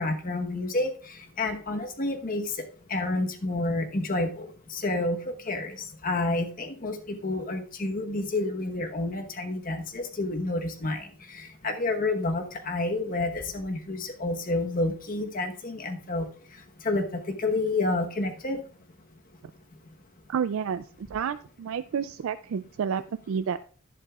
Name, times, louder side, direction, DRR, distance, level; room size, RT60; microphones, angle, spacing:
voice 1, 0.0-18.6, left 2 dB, 40° left, 5 dB, 1.1 m, -30 dB
voice 2, 20.3-23.6, right 7 dB, 65° right, 12 dB, 0.3 m, -30 dB
11.0 x 10.5 x 2.4 m, 0.43 s
head